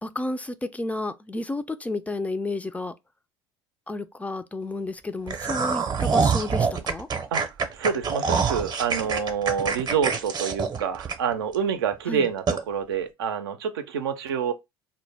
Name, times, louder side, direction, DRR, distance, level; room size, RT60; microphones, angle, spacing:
voice 1, 0.0-2.9 3.9-7.1 12.1-12.3, left 2 dB, 10° left, 0.3 m, -31 dB
sound 1, 5.3-11.6 11.9-12.0 12.5-12.6, right 5 dB, 35° right, 0.6 m, -25 dB
voice 2, 7.3-14.5, right 7 dB, 85° right, 0.4 m, -27 dB
2.1 x 2.1 x 3.2 m
hypercardioid pair, 75°, 12 cm